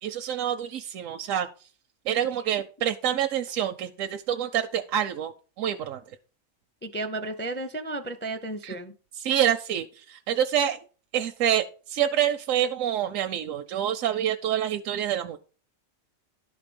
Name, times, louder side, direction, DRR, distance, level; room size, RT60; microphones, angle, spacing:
voice 1, 0.0-1.5 2.1-5.3 5.6-6.0 8.6-8.8 9.2-10.8 11.1-15.4, right 10 dB, 80° right, 6 dB, 1.0 m, -27 dB
voice 2, 6.8-8.9, right 2 dB, 15° left, 7 dB, 0.4 m, -33 dB
11.5 x 4.1 x 5.1 m, 0.39 s
omnidirectional pair, 1.4 m